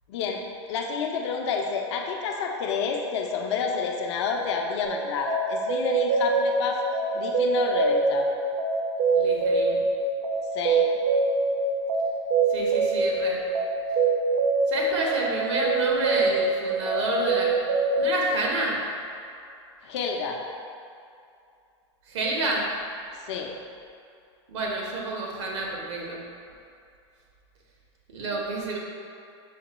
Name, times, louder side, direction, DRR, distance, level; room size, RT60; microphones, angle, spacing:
voice 1, 0.1-0.4 0.7-6.8 7.1-8.3 10.5-11.0 19.8-20.4 23.3-23.5, left 5 dB, 70° left, 1 dB, 0.6 m, -29 dB
sound 1, 4.8-18.1, right 3 dB, 55° right, 0.6 m, -25 dB
voice 2, 9.1-9.8 12.5-13.4 14.7-17.5 17.9-18.8 22.1-22.7 24.5-26.2 28.1-28.8, right 2 dB, 75° right, -2 dB, 1.0 m, -29 dB
5.6 x 2.2 x 4.1 m, 2.5 s
supercardioid pair, 130°, 15 cm